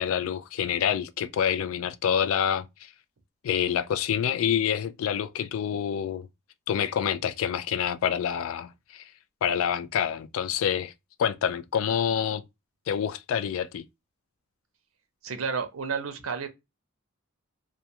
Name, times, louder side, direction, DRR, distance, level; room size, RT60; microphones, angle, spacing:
voice 1, 0.0-2.9 3.4-6.3 6.7-9.1 9.4-10.9 11.2-12.4 12.9-13.8, left 8 dB, 75° left, 0.3 m, -27 dB
voice 2, 15.2-16.5, right 5 dB, 75° right, 0.6 m, -31 dB
2.3 x 2.2 x 2.7 m
head